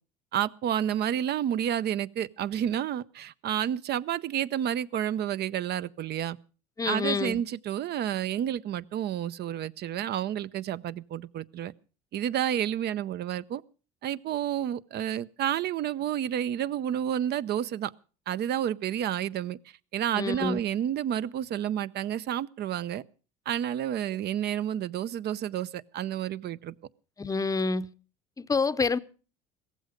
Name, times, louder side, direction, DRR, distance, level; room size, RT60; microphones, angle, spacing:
voice 1, 0.3-6.4 6.9-11.7 12.1-13.6 14.0-17.9 18.3-19.6 19.9-23.0 23.5-26.7, right 10 dB, 50° right, 0.7 m, -30 dB
voice 2, 6.8-7.4 20.1-20.6 27.2-27.9 28.4-29.0, left 4 dB, 15° left, 0.7 m, -27 dB
16.5 x 15.0 x 5.1 m
supercardioid pair, 90°, 21 cm